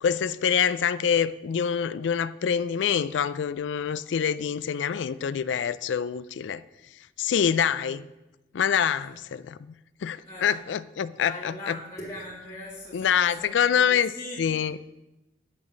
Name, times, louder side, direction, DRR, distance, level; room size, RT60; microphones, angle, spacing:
voice 1, 0.0-6.6 7.2-8.1 8.5-9.7 10.0-11.8 12.9-14.1 14.4-14.8, left 8 dB, 80° left, 16 dB, 0.4 m, -25 dB
voice 2, 10.2-10.6 11.2-14.8, left 1 dB, 15° left, -7 dB, 2.2 m, -41 dB
8.9 x 6.4 x 7.3 m, 0.99 s
head